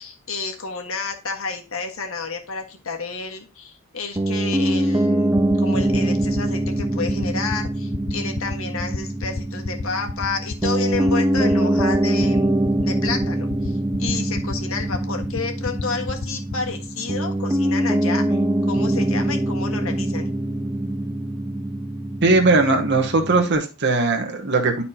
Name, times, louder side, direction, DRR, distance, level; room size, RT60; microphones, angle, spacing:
voice 1, 0.0-12.6 12.8-18.4 18.7-20.3, left 4 dB, 70° left, 3 dB, 1.5 m, -30 dB
Piano, 4.2-23.6, right 1 dB, 15° right, 0.4 m, -23 dB
sound 1, 5.4-16.7, left 4 dB, 45° left, 0.4 m, -30 dB
voice 2, 22.2-24.8, right 3 dB, 55° right, 3 dB, 1.1 m, -19 dB
11.5 x 4.2 x 2.8 m, 0.31 s
head